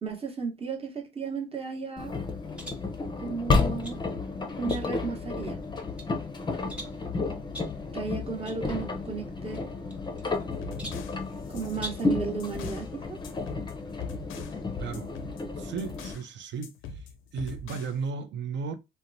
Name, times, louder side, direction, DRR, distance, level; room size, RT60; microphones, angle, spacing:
voice 1, 0.0-2.1 3.2-4.0 4.6-5.6 7.9-9.6 11.5-13.2, right 5 dB, 30° right, 0.9 m, -34 dB
Engine, 2.0-16.1, left 3 dB, 20° left, 0.5 m, -32 dB
sound 1, 2.5-2.9 3.5-4.0 4.7-5.1 5.6-6.1 6.7-7.1 7.5-7.8 8.5-8.6 8.9-9.0 9.9-10.4 10.8-11.1 11.7-12.1, right 1 dB, 5° right, 1.0 m, -42 dB
sound 2, 10.3-12.9 13.2-14.6 14.9-16.3 16.6-18.0, left 4 dB, 85° left, 0.4 m, -43 dB
voice 2, 14.8-15.1 15.6-17.1 17.3-18.8, right 5 dB, 65° right, 0.5 m, -35 dB
2.8 x 2.1 x 2.5 m
cardioid pair, 90°, 20 cm